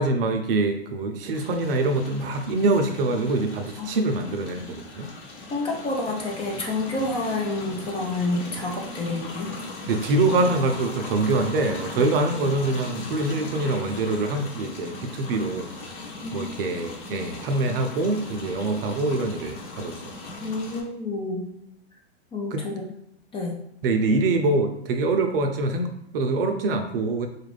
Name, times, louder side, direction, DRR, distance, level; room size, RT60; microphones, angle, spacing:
voice 1, 0.0-5.1 9.9-15.7 16.3-19.9 22.5-22.7 23.8-27.3, right 2 dB, 55° right, 5 dB, 0.6 m, -24 dB
sound 1, 1.3-20.8, left 2 dB, 50° left, 1.1 m, -38 dB
voice 2, 5.5-9.5 16.2-16.8 20.4-21.5 22.3-22.8 23.3-23.6, left 2 dB, 15° left, 0 dB, 0.6 m, -29 dB
4.2 x 2.5 x 3.2 m, 0.74 s
hypercardioid pair, 115°, 33 cm